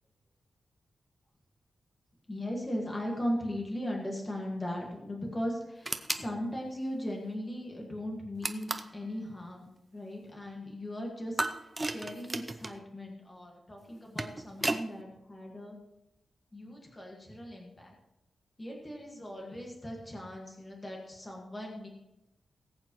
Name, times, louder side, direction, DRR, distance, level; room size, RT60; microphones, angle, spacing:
voice 1, 2.3-11.4 11.8-15.8 16.5-17.9 18.6-21.9, equal, 20° left, -1 dB, 1.7 m, -38 dB
sound 1, 5.8-6.3 8.4-9.0 11.4-12.8 13.9-14.9, right 2 dB, 15° right, 0.6 m, -34 dB
19.0 x 8.5 x 3.1 m, 0.91 s
wide cardioid pair, 175°, 0 cm